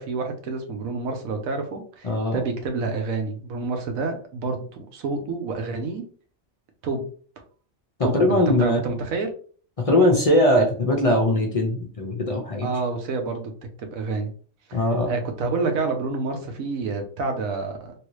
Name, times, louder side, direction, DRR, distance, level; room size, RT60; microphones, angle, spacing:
voice 1, 0.0-6.0 6.8-7.0 8.0-9.3 10.6-10.7 12.6-13.5 13.8-14.3 14.7-17.9, right 3 dB, 85° right, 5 dB, 1.2 m, -28 dB
voice 2, 2.0-2.4 8.1-8.8 9.9-12.7 14.7-15.1, left 1 dB, 50° left, 1 dB, 0.4 m, -20 dB
3.2 x 2.7 x 3.1 m, 0.43 s
omnidirectional pair, 1.4 m